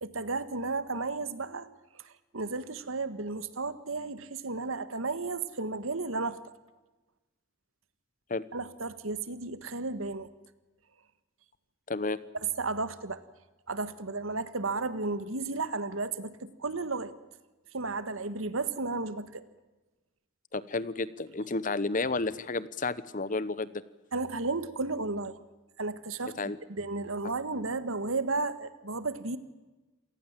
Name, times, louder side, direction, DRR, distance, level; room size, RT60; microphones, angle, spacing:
voice 1, 0.0-1.7 2.0-6.4 8.5-10.3 12.4-13.2 13.7-17.1 17.7-19.4 24.1-25.4 25.8-29.4, right 3 dB, 75° right, 13 dB, 1.6 m, -33 dB
voice 2, 11.9-12.2 20.5-23.8 26.4-26.6, left 3 dB, 40° left, 17 dB, 0.9 m, -31 dB
27.5 x 18.5 x 7.5 m, 1.1 s
head